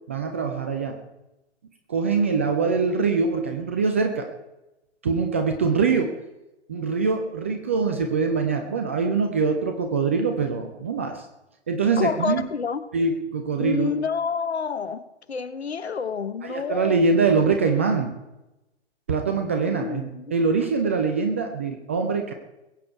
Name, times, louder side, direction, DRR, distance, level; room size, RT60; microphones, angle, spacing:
voice 1, 0.1-1.0 1.9-4.3 5.0-6.1 6.7-11.3 11.7-12.5 12.9-13.9 16.4-18.1 19.1-22.3, right 4 dB, 10° right, 5 dB, 0.4 m, -23 dB
voice 2, 12.0-12.9 13.6-15.0 15.3-17.1 19.7-20.3, left 5 dB, 65° left, 14 dB, 1.1 m, -28 dB
21.5 x 8.6 x 4.6 m, 0.96 s
figure-of-eight pair, 125°, 35 cm